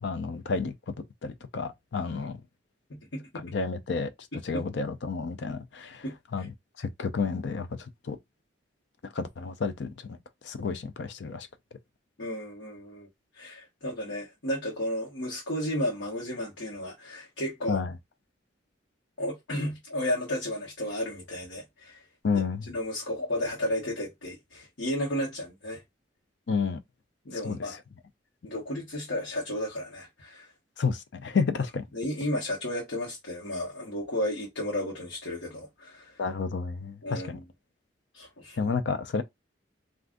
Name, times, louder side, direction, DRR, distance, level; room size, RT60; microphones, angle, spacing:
voice 1, 0.0-0.9 1.2-2.4 3.3-4.1 4.4-6.0 6.3-8.2 9.1-10.2 10.4-11.5 17.7-17.9 22.2-22.6 26.5-26.8 27.4-27.6 30.8-31.8 36.2-37.4 38.6-39.2, left 5 dB, 65° left, 0.4 m, -31 dB
voice 2, 2.9-3.4 4.5-4.6 6.0-6.5 12.2-13.1 13.3-17.8 19.2-22.0 22.7-25.8 27.2-27.8 28.4-30.5 31.9-36.2 37.0-37.4 38.1-38.7, left 1 dB, 80° left, 1.1 m, -33 dB
2.5 x 2.4 x 3.5 m
head